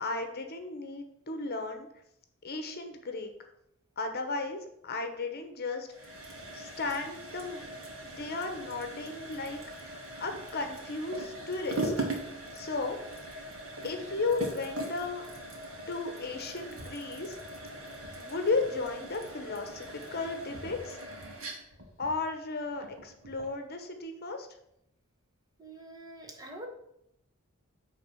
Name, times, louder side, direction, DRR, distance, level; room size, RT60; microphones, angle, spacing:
voice 1, 0.0-1.9 2.4-3.3 4.0-5.9 6.5-7.6 8.0-12.1 12.5-13.0 13.3-13.4 13.8-15.2 15.9-17.4 18.2-21.2 22.0-24.5, left 3 dB, 50° left, 6 dB, 1.0 m, -35 dB
sound 1, 5.9-23.6, right 1 dB, 70° right, 1.8 m, -40 dB
voice 2, 25.6-26.7, right 1 dB, 20° right, 2 dB, 1.2 m, -45 dB
9.0 x 3.6 x 6.2 m, 0.78 s
head